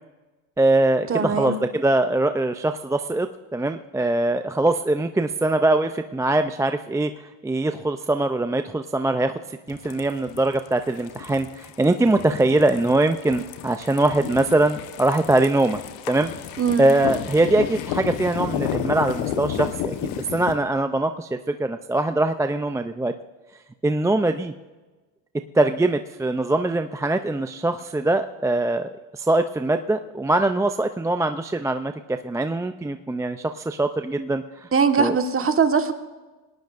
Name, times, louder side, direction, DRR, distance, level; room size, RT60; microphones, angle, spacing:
voice 1, 0.6-7.1 7.4-9.4 9.7-15.8 16.1-16.3 16.8-23.1 23.8-24.5 25.5-34.7 35.0-35.2, right 2 dB, 5° right, 8 dB, 0.4 m, -22 dB
voice 2, 1.1-1.6 16.6-16.9 34.7-35.9, right 5 dB, 30° right, 6 dB, 1.4 m, -21 dB
sound 1, 9.7-20.5, left 10 dB, 80° left, 1.2 m, -32 dB
19.5 x 18.5 x 2.5 m, 1.2 s
supercardioid pair, 95°, 45 cm